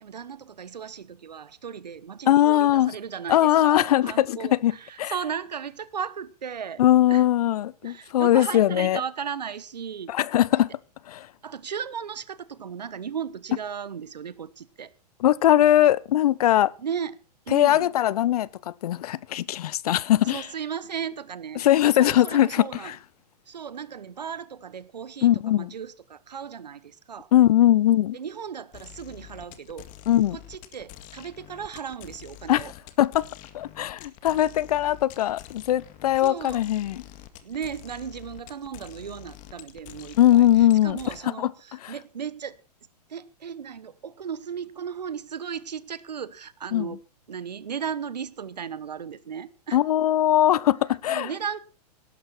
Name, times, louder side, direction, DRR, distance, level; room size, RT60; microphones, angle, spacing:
voice 1, 0.0-6.8 7.1-7.3 7.8-10.1 11.4-14.9 16.8-17.9 19.9-21.7 21.9-22.9 23.5-27.3 28.1-29.9 30.3-32.7 36.2-36.6 37.4-42.6 43.1-47.0 47.3-49.8 51.1-51.6, right 7 dB, 85° right, 1.1 m, -36 dB
voice 2, 2.3-2.9 3.3-4.7 5.0-5.1 6.8-9.0 10.1-10.7 11.1-11.3 15.2-16.7 17.5-20.4 21.6-22.9 25.2-25.7 27.3-28.2 30.1-30.4 32.5-32.6 33.0-33.3 33.5-37.0 40.2-41.0 41.4-41.5 41.8-41.9 46.7-46.9 49.7-51.3, left 12 dB, 65° left, 0.8 m, -20 dB
sound 1, 28.7-41.2, left 13 dB, 40° left, 2.0 m, -46 dB
18.0 x 11.5 x 4.4 m
hypercardioid pair, 115°, 21 cm